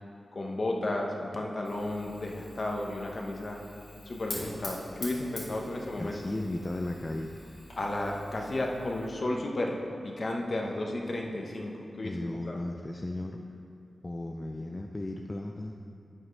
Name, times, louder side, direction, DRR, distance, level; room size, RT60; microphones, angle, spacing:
voice 1, 0.3-3.6 4.1-6.2 7.8-9.8 10.0-11.7 12.0-12.2 12.5-12.6, left 1 dB, 45° left, 1 dB, 1.1 m, -33 dB
Fire, 1.6-9.1, left 2 dB, 65° left, 2.3 m, -45 dB
voice 2, 6.0-7.4 12.0-13.4 14.0-15.8, left 1 dB, 25° left, 2 dB, 0.4 m, -35 dB
11.5 x 8.6 x 3.3 m, 2.7 s
wide cardioid pair, 95°, 0 cm